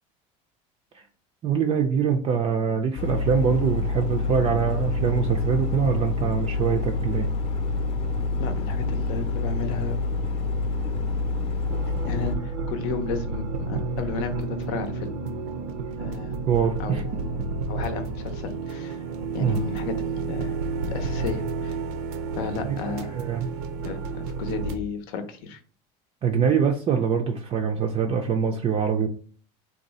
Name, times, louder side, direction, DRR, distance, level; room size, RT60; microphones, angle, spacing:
voice 1, 1.4-7.3 16.5-17.0 19.4-19.6 22.7-22.8 23.1-23.5 26.2-29.1, right 6 dB, 30° right, 2 dB, 0.4 m, -24 dB
sound 1, 3.0-12.4, left 3 dB, 30° left, 0.7 m, -27 dB
voice 2, 8.4-10.0 12.0-15.1 16.0-16.3 16.8-17.4 17.7-19.0 19.3-20.6 20.9-21.8 22.4-23.2 23.8-25.6, left 5 dB, 70° left, 8 dB, 0.7 m, -33 dB
sound 2, 11.7-24.8, right 4 dB, 80° right, 0.6 m, -31 dB
2.6 x 2.3 x 4.0 m, 0.42 s
supercardioid pair, 120°, 18 cm